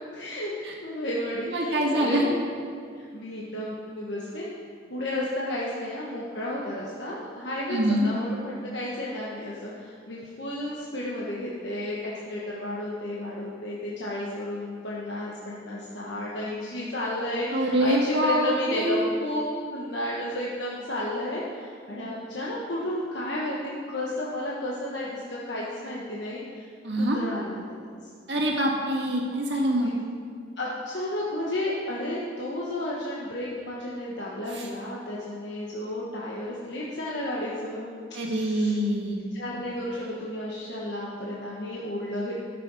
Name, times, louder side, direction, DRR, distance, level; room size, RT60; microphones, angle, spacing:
voice 1, 0.1-0.5 0.8-2.4 3.0-4.5 4.9-7.8 8.0-19.4 19.7-23.6 23.9-26.7 27.0-27.7 29.8-29.9 30.6-37.9 38.2-38.7 39.3-42.3, left 1 dB, 70° left, -5 dB, 1.2 m, -32 dB
voice 2, 1.5-2.3 7.7-8.1 17.5-19.1 26.8-27.2 28.3-29.9 34.5-34.7 38.1-39.2, right 1 dB, 70° right, -1 dB, 1.7 m, -25 dB
12.5 x 6.8 x 4.8 m, 2.2 s
head